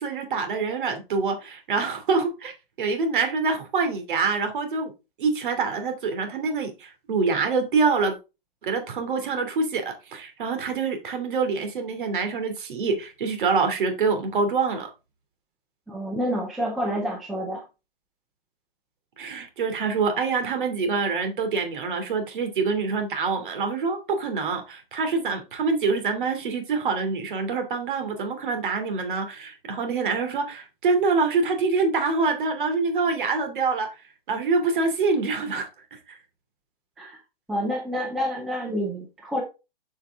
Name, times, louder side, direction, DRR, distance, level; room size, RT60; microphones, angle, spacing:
voice 1, 0.0-4.9 5.2-8.2 8.6-14.9 19.2-33.9 34.3-36.2, right 4 dB, 60° right, 2.8 m, -25 dB
voice 2, 15.9-17.6 37.0-37.2 37.5-39.4, equal, ahead, 0.4 m, -28 dB
7.3 x 6.7 x 3.5 m
hypercardioid pair, 160°, 29 cm